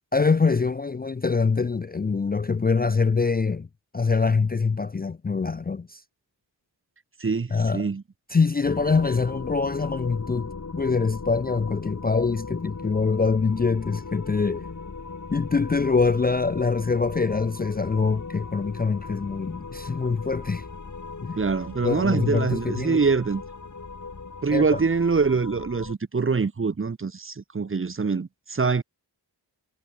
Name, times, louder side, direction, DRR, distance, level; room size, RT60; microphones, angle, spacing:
voice 1, 0.1-3.7 3.9-6.0 7.5-7.9 8.3-14.7 15.3-20.6 21.2-21.4 21.8-23.0 24.5-24.8, left 4 dB, 25° left, 0.4 m, -24 dB
voice 2, 7.2-8.0 21.4-23.4 24.4-28.8, right 4 dB, 30° right, 0.8 m, -24 dB
sound 1, 8.6-25.9, left 4 dB, 45° left, 2.4 m, -38 dB
wide cardioid pair, 65°, 42 cm